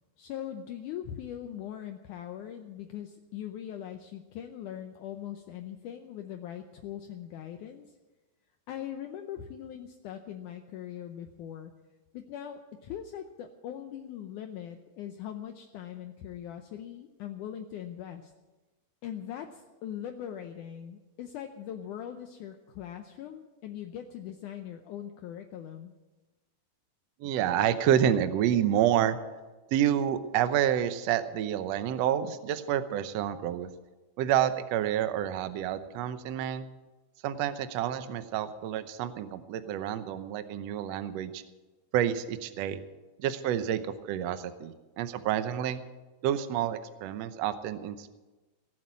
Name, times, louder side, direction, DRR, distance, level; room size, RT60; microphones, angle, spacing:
voice 1, 0.2-7.9 8.7-11.7 12.1-18.3 19.0-25.9, left 10 dB, 75° left, 5 dB, 2.0 m, -41 dB
voice 2, 27.2-29.2 29.7-33.7 34.2-36.7 37.2-41.4 41.9-42.8 43.2-45.8 46.2-48.1, right 10 dB, 85° right, 11 dB, 1.4 m, -28 dB
18.0 x 7.6 x 8.6 m, 1.2 s
omnidirectional pair, 4.1 m